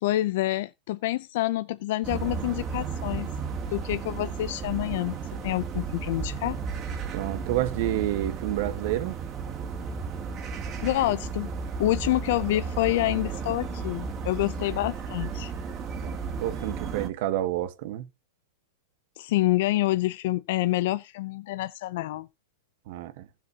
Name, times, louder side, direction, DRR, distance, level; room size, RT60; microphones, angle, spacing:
voice 1, 0.0-3.3 3.7-6.6 10.8-11.5 11.8-15.5 19.2-22.3, left 16 dB, 60° left, 0.5 m, -27 dB
sound 1, 2.0-17.1, right 5 dB, 35° right, 2.7 m, -34 dB
voice 2, 7.1-9.2 16.0-16.1 16.4-18.1 22.9-23.3, right 14 dB, 55° right, 1.3 m, -29 dB
15.5 x 7.1 x 2.9 m
hypercardioid pair, 115°, 0 cm